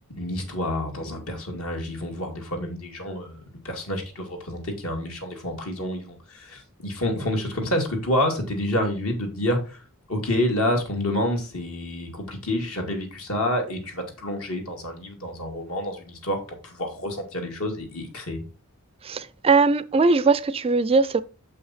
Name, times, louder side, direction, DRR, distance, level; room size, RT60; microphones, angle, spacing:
voice 1, 0.2-3.4 3.6-9.8 10.1-18.4, left 1 dB, 70° left, 2.2 m, -28 dB
voice 2, 19.0-21.2, right 4 dB, 25° right, 0.3 m, -20 dB
7.2 x 5.7 x 4.1 m
head